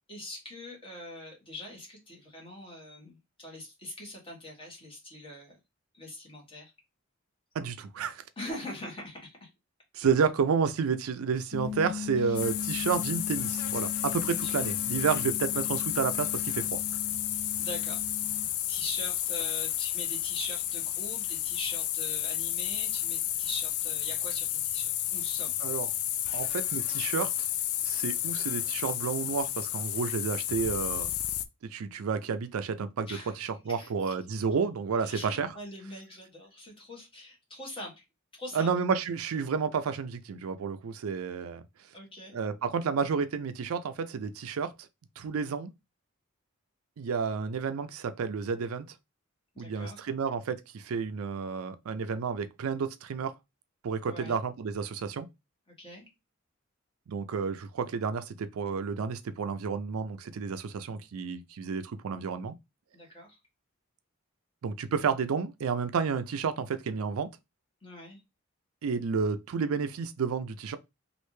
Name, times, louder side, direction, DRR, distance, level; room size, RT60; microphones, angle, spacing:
voice 1, 0.1-5.6 6.0-6.7 8.4-9.5 12.2-12.4 14.4-14.7 15.1-15.2 15.6-15.7 17.6-18.0 18.7-25.5 26.3-26.4 33.1-34.1 35.0-38.0 38.3-38.7 41.9-42.4 49.5-50.0 54.1-54.4 55.8-56.0 62.9-63.4 67.8-68.2, left 1 dB, 25° left, 1.5 m, -43 dB
voice 2, 7.5-8.2 9.9-16.8 25.6-25.9 26.3-27.5 27.8-31.1 31.6-33.1 33.4-35.5 38.5-41.6 42.3-44.7 45.2-45.7 47.0-48.9 49.6-53.3 53.8-55.3 57.1-62.6 64.6-67.3 68.8-70.8, right 5 dB, 85° right, 0.4 m, -31 dB
sound 1, 11.5-18.5, left 8 dB, 45° left, 0.8 m, -39 dB
sound 2, 12.4-31.5, left 12 dB, 85° left, 0.4 m, -32 dB
3.2 x 2.6 x 3.1 m
head